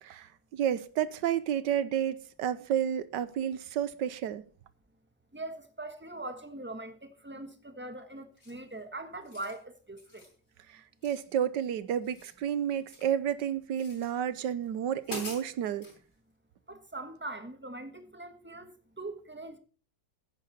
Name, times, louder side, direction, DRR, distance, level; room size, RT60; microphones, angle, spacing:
voice 1, 0.0-4.4 10.7-15.9, right 9 dB, 85° right, 1.5 m, -31 dB
voice 2, 5.3-7.0 7.2-10.2 16.7-18.7 19.0-19.6, right 2 dB, 5° right, 1.2 m, -41 dB
sound 1, 8.4-8.7 9.1-9.6 10.0-10.4 11.0-11.7 11.9-13.2 13.7-14.1 14.6-14.7 15.0-16.0, left 1 dB, 65° left, 4.8 m, -45 dB
15.5 x 9.8 x 4.2 m
omnidirectional pair, 1.9 m